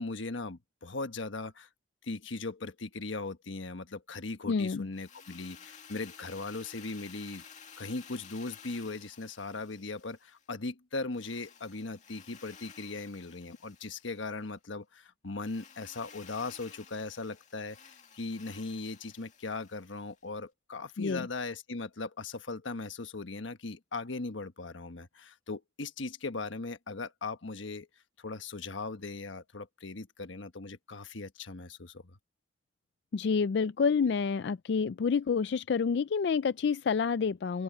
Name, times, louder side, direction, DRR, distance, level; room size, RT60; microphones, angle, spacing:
voice 1, 0.0-1.7 2.0-7.4 7.8-27.9 28.2-32.2, left 3 dB, 90° left, 1.3 m, -39 dB
voice 2, 4.5-4.9 21.0-21.3 33.1-37.6, left 5 dB, 60° left, 0.4 m, -28 dB
Drill, 4.9-10.5 11.1-14.4 15.4-20.2, left 7 dB, 40° left, 2.3 m, -54 dB
open air
head